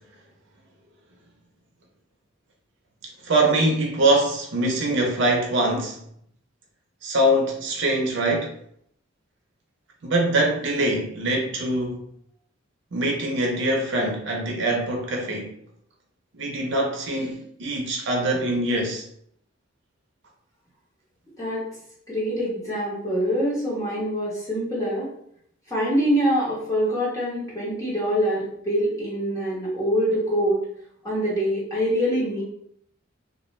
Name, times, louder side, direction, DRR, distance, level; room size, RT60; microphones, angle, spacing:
voice 1, 3.2-6.0 7.0-8.5 10.0-12.0 12.9-15.6 16.3-19.1, right 1 dB, 65° right, 0.6 m, -23 dB
voice 2, 22.1-25.1 25.7-30.6 31.0-32.4, equal, 15° left, 1.0 m, -24 dB
2.3 x 2.2 x 3.0 m
head